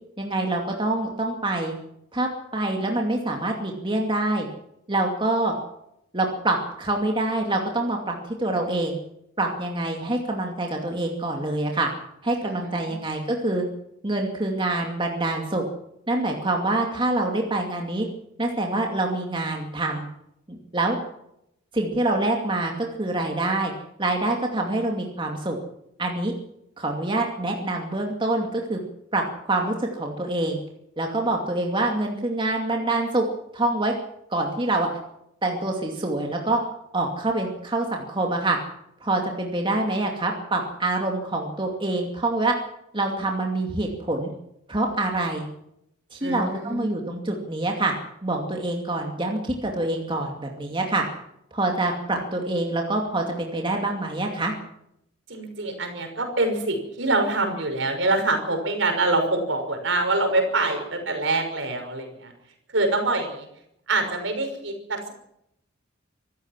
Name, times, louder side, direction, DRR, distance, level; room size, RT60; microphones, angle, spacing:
voice 1, 0.2-1.7 2.1-4.5 4.9-5.5 6.1-9.0 9.4-11.9 12.2-13.6 14.0-15.6 16.1-18.1 18.4-20.1 20.5-21.0 21.7-23.7 24.0-25.6 26.0-26.3 26.8-28.8 29.1-30.6 31.0-33.3 33.5-33.9 34.3-34.9 35.4-36.6 36.9-38.6 39.0-42.5 42.9-44.3 44.7-45.5 46.1-47.9 48.2-51.0 51.5-54.5, right 2 dB, 25° right, 1 dB, 2.5 m, -26 dB
voice 2, 12.4-12.9 46.2-47.0 55.3-62.3 62.7-63.5 63.9-65.1, right 2 dB, 70° right, 5 dB, 5.9 m, -25 dB
25.5 x 14.0 x 7.5 m, 0.79 s
head